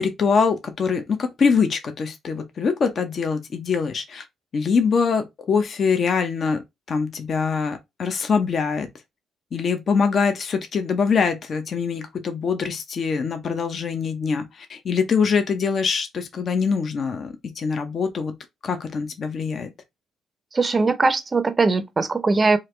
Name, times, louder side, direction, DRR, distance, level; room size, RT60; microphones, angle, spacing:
voice 1, 0.0-4.2 4.5-6.6 6.9-8.9 9.5-18.3 18.6-19.7, left 5 dB, 50° left, 0.6 m, -23 dB
voice 2, 20.5-22.6, right 3 dB, 30° right, 0.5 m, -20 dB
3.2 x 2.4 x 3.1 m
cardioid pair, 90°, 0 cm